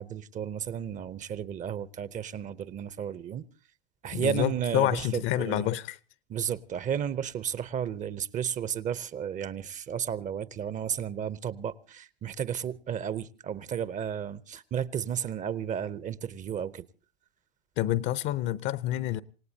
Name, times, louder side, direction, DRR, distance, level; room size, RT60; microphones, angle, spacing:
voice 1, 0.0-3.4 4.0-5.7 6.3-16.8, right 8 dB, 25° right, 0.7 m, -33 dB
voice 2, 4.1-6.0 17.8-19.2, left 13 dB, 40° left, 0.8 m, -28 dB
27.5 x 17.5 x 2.8 m
hypercardioid pair, 105°, 30 cm